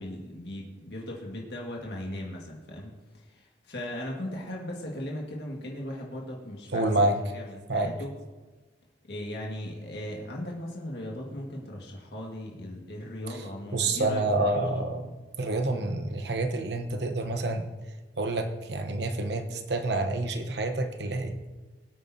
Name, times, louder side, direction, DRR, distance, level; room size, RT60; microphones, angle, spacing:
voice 1, 0.0-8.1 9.1-14.8, left 1 dB, 60° left, -2 dB, 1.8 m, -38 dB
voice 2, 6.7-7.2 7.7-7.9 13.3-13.4 13.7-15.1 15.4-17.7 18.2-21.4, right 2 dB, 65° right, 7 dB, 1.0 m, -28 dB
21.5 x 8.8 x 2.8 m, 1.3 s
head